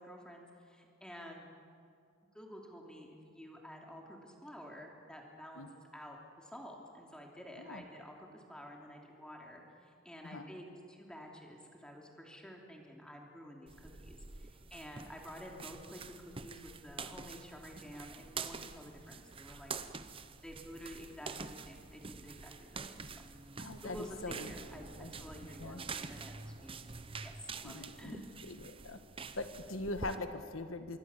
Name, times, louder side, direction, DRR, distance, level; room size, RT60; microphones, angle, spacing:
voice 1, 0.0-1.5 2.3-5.7 5.9-19.7 20.4-23.2 23.8-26.8 27.2-28.3, equal, 5° left, 0 dB, 3.1 m, -50 dB
sound 1, 13.7-30.2, right 4 dB, 25° right, 0.8 m, -47 dB
voice 2, 23.6-24.5 25.0-25.1 25.4-25.8 27.6-28.2 28.5-29.0 29.4-31.0, left 2 dB, 85° left, 8 dB, 1.5 m, -42 dB
26.0 x 22.0 x 7.3 m, 2.4 s
head